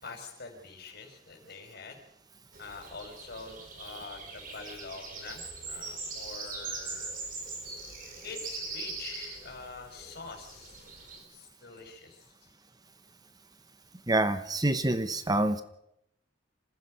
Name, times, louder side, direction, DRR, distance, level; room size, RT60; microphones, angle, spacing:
voice 1, 0.0-2.0 2.6-7.2 8.2-10.9 11.3-12.5, left 4 dB, 60° left, 3 dB, 5.4 m, -45 dB
sound 1, 2.5-11.2, right 3 dB, 45° right, 4.7 m, -41 dB
voice 2, 14.1-15.6, right 2 dB, 20° right, 11 dB, 0.9 m, -26 dB
26.5 x 15.5 x 6.4 m, 0.82 s
head